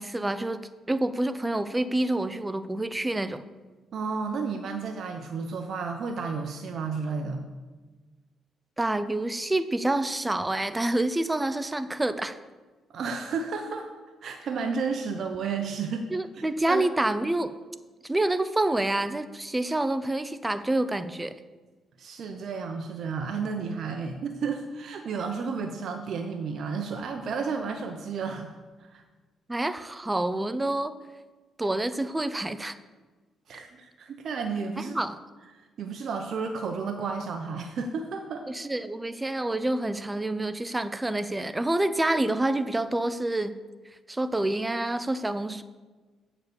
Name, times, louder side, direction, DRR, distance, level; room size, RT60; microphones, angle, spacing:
voice 1, 0.0-3.4 8.8-12.4 16.1-17.5 18.0-21.4 29.5-30.9 31.6-32.8 34.9-35.2 38.5-43.6 44.1-45.6, right 1 dB, 15° right, 12 dB, 0.7 m, -27 dB
voice 2, 3.9-7.4 12.9-13.9 14.2-16.1 16.3-16.8 22.0-29.0 33.5-34.9 35.8-38.5, right 5 dB, 60° right, 4 dB, 0.9 m, -32 dB
8.0 x 7.2 x 7.0 m, 1.3 s
cardioid pair, 90°, 0 cm